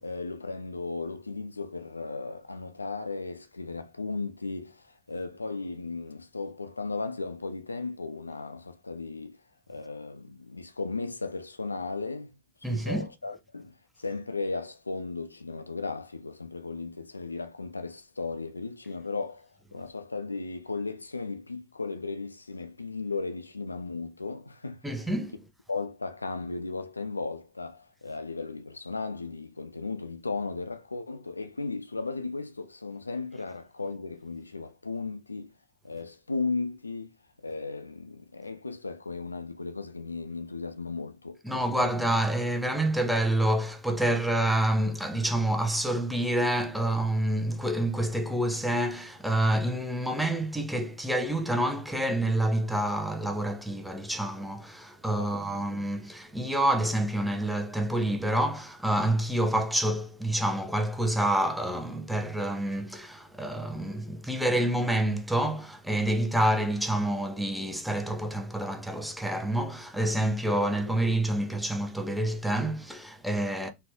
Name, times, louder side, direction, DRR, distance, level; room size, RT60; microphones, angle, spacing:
voice 1, 0.0-9.4 9.7-12.3 12.6-25.0 25.7-35.5 35.8-37.1 37.4-42.0 55.2-55.4, left 3 dB, 80° left, 0.5 m, -36 dB
voice 2, 12.6-13.1 24.8-25.4 41.4-73.7, right 1 dB, ahead, 0.8 m, -28 dB
4.2 x 3.1 x 2.8 m
figure-of-eight pair, 90°, 0 cm